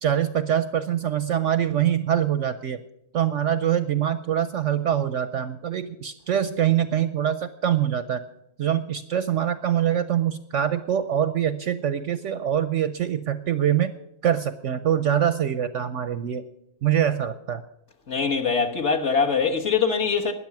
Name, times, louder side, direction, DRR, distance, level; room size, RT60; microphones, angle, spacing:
voice 1, 0.0-2.8 3.1-8.2 8.6-13.9 14.2-16.5 16.8-17.6, right 10 dB, 65° right, 0.8 m, -24 dB
voice 2, 18.1-20.3, left 5 dB, 50° left, 1.5 m, -23 dB
13.0 x 9.8 x 5.9 m
omnidirectional pair, 1.6 m